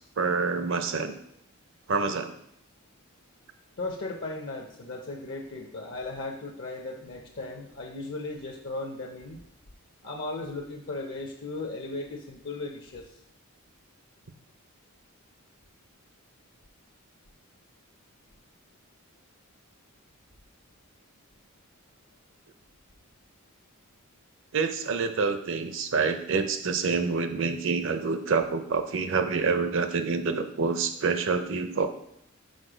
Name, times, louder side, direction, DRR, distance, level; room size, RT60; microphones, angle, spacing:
voice 1, 0.2-1.2 1.9-2.3 24.5-31.9, right 4 dB, 60° right, 9 dB, 0.7 m, -27 dB
voice 2, 3.8-9.4 10.0-13.1, left 2 dB, 55° left, 1 dB, 0.8 m, -36 dB
6.4 x 4.7 x 5.0 m, 0.76 s
head